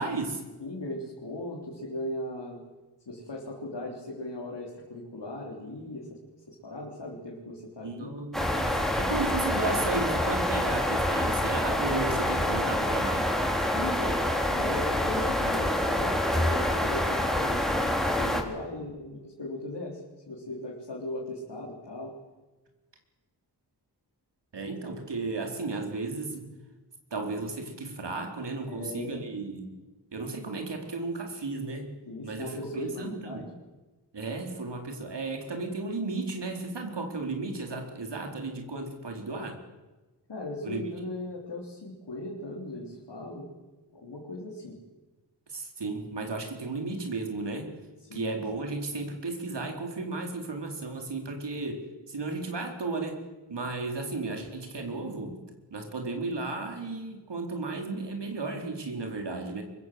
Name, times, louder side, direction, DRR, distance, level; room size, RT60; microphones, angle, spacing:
voice 1, 0.0-0.4 7.8-13.3 24.5-26.5 27.1-29.7 30.1-31.9 32.2-33.5 34.1-39.6 40.6-40.8 45.5-47.7 48.1-53.2 53.5-55.4 55.7-59.6, right 3 dB, 80° right, 3 dB, 4.4 m, -34 dB
voice 2, 0.6-2.6 3.1-6.1 6.5-8.1 13.7-20.0 20.3-22.1 28.6-29.2 32.1-33.5 40.3-43.5 43.9-44.8 48.1-48.6, left 1 dB, 85° left, -2 dB, 4.1 m, -38 dB
sound 1, 8.3-18.4, left 1 dB, ahead, 3.4 m, -27 dB
24.5 x 23.0 x 7.8 m, 1.2 s
wide cardioid pair, 95°, 41 cm